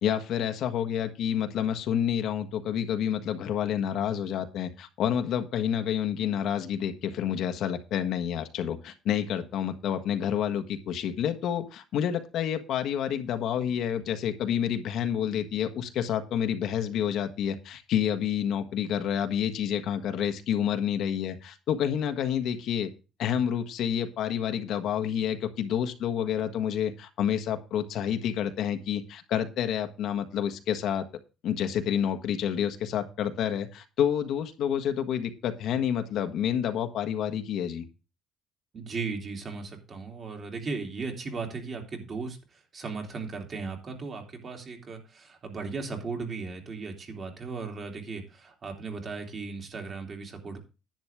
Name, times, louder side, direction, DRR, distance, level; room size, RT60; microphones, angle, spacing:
voice 1, 0.0-22.9 23.2-31.1 31.4-37.8, left 9 dB, 65° left, 7 dB, 1.5 m, -29 dB
voice 2, 38.7-42.4 42.7-50.6, right 4 dB, 35° right, 3 dB, 2.9 m, -36 dB
10.5 x 9.8 x 3.5 m, 0.31 s
cardioid pair, 140°, 0 cm